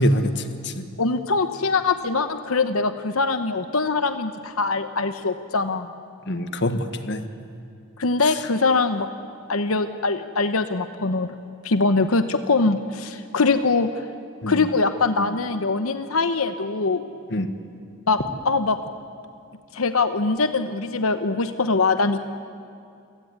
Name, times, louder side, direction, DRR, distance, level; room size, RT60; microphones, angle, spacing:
voice 1, 0.0-0.9 6.3-7.3 14.4-14.7 17.3-17.5, equal, 55° left, 9 dB, 1.5 m, -24 dB
voice 2, 1.0-5.9 8.0-9.1 9.5-11.3 11.6-14.1 14.5-17.0 18.1-18.2 18.4-18.8 19.7-22.2, left 3 dB, 75° left, 9 dB, 1.0 m, -22 dB
27.5 x 16.5 x 9.7 m, 2.4 s
head